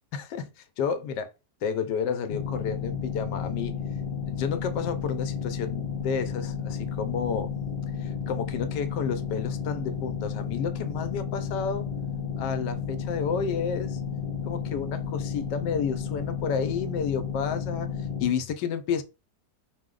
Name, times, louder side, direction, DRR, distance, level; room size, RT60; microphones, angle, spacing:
voice 1, 0.1-1.3 1.6-3.8 4.3-7.5 8.0-11.9 12.4-14.0 14.5-17.9 18.2-19.0, left 6 dB, 85° left, 1.2 m, -31 dB
sound 1, 2.3-18.3, left 6 dB, 45° left, 0.8 m, -32 dB
4.6 x 2.1 x 3.7 m
omnidirectional pair, 1.9 m